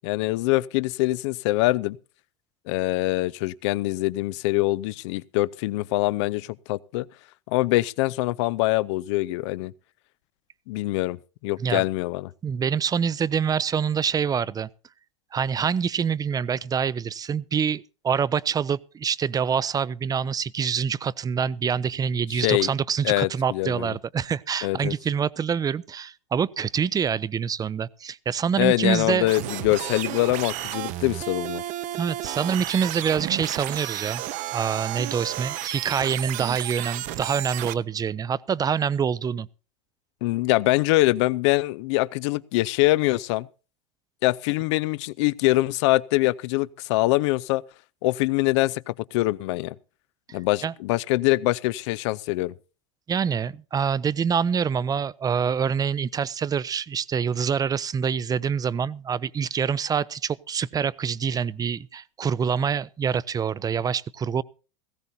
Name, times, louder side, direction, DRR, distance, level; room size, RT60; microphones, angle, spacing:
voice 1, 0.0-2.0 2.7-7.1 7.5-9.7 10.7-11.2 11.4-12.3 22.3-22.7 23.0-23.9 24.6-24.9 28.6-31.6 40.2-43.5 44.2-47.6 48.0-49.7 50.3-52.5, left 19 dB, 65° left, 0.6 m, -24 dB
voice 2, 12.4-14.7 15.3-29.3 32.0-34.2 34.5-39.5 50.3-50.7 53.1-64.4, right 7 dB, 25° right, 0.6 m, -26 dB
sound 1, 29.3-37.7, right 14 dB, 50° right, 0.8 m, -32 dB
18.0 x 15.5 x 2.7 m
hypercardioid pair, 90°, 16 cm